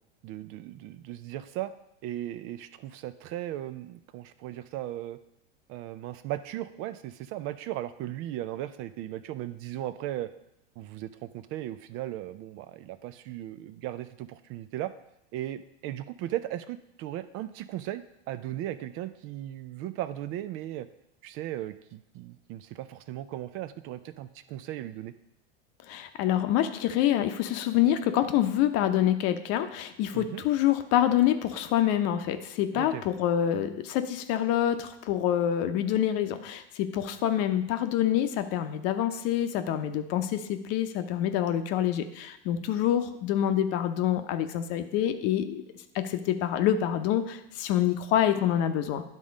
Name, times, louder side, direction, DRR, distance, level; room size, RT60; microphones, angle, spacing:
voice 1, 0.2-1.7 2.0-5.2 5.7-10.3 10.8-14.9 15.3-20.9 21.2-25.1 30.1-30.4 32.7-33.0, right 13 dB, 45° right, 13 dB, 0.4 m, -37 dB
voice 2, 25.9-45.6 45.9-49.0, left 11 dB, 50° left, 9 dB, 0.8 m, -26 dB
10.5 x 3.7 x 5.2 m, 0.82 s
hypercardioid pair, 100°, 32 cm